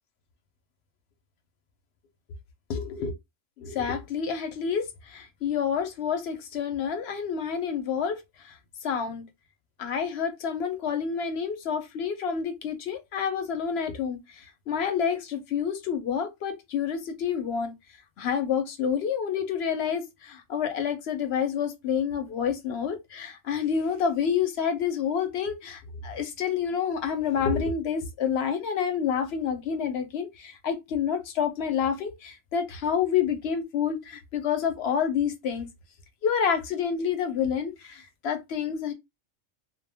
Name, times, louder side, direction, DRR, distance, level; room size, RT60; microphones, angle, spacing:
voice 1, 2.7-3.2 3.6-9.3 9.8-17.7 18.2-35.7 36.2-38.9, left 7 dB, 65° left, 0.8 m, -28 dB
2.1 x 2.1 x 3.3 m
omnidirectional pair, 1.3 m